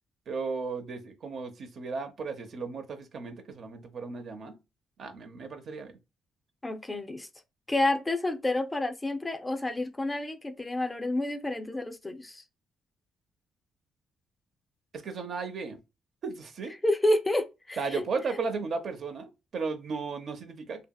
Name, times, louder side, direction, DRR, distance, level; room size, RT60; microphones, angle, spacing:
voice 1, 0.3-4.6 5.0-5.9 15.0-15.8 16.2-16.7 17.8-20.9, right 4 dB, 60° right, 0.7 m, -35 dB
voice 2, 6.6-7.3 7.7-12.4 16.8-18.1, left 1 dB, 15° left, 0.4 m, -29 dB
2.7 x 2.7 x 2.2 m
cardioid pair, 90°, 0 cm